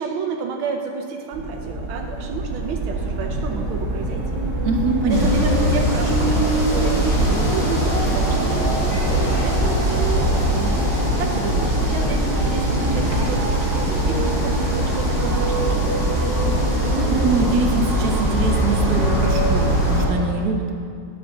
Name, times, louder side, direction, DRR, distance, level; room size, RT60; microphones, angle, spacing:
voice 1, 0.0-4.4 5.1-10.7 11.2-15.9, right 5 dB, 75° right, 2 dB, 1.5 m, -31 dB
sound 1, 1.3-20.1, right 2 dB, 35° right, 2.2 m, -23 dB
voice 2, 4.6-5.5 16.9-20.7, right 2 dB, 60° right, 3 dB, 1.3 m, -23 dB
sound 2, 5.1-20.1, left 1 dB, 65° left, 3.1 m, -25 dB
9.8 x 5.8 x 6.4 m, 2.5 s
omnidirectional pair, 2.3 m